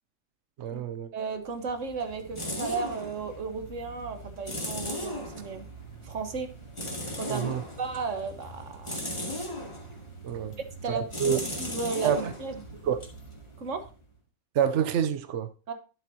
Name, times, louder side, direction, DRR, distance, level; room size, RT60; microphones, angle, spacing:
voice 1, 0.6-1.1 7.3-7.6 10.2-10.5 10.9-11.4 12.0-12.3 12.8-13.0 14.5-15.5, right 8 dB, 70° right, 0.7 m, -27 dB
voice 2, 1.1-5.7 6.0-6.5 7.1-9.1 10.8-12.6 13.6-13.9 15.7-15.8, right 4 dB, 45° right, 1.5 m, -34 dB
sound 1, 1.4-14.1, equal, 15° left, 1.9 m, -38 dB
11.5 x 8.2 x 2.8 m
omnidirectional pair, 2.0 m